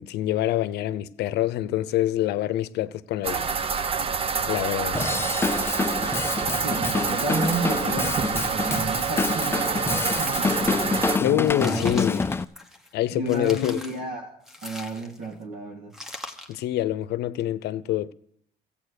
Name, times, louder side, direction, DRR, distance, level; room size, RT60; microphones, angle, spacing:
voice 1, 0.0-3.5 4.5-5.0 11.2-12.2 12.9-13.8 16.5-18.1, left 13 dB, 75° left, 0.7 m, -26 dB
sound 1, 3.2-11.2, right 5 dB, 35° right, 0.7 m, -27 dB
Drum kit / Drum, 4.9-12.4, left 4 dB, 15° left, 0.4 m, -27 dB
voice 2, 6.6-11.9 13.1-15.9, right 2 dB, 70° right, 1.7 m, -32 dB
sound 2, 8.4-9.3 9.7-11.0 11.4-12.9 13.3-14.0 14.4-15.3 15.9-16.6, left 1 dB, 5° right, 1.3 m, -42 dB
14.5 x 8.7 x 6.5 m
cardioid pair, 110°, 17 cm